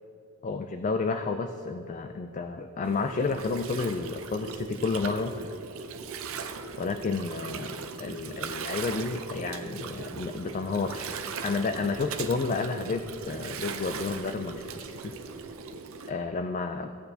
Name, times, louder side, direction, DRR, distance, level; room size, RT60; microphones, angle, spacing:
voice 1, 0.4-5.3 6.8-11.1 11.4-15.1 16.1-16.9, left 4 dB, 35° left, 7 dB, 0.3 m, -31 dB
Gurgling, 2.8-16.1, right 5 dB, 65° right, 0.6 m, -39 dB
16.0 x 8.9 x 2.8 m, 2.9 s
head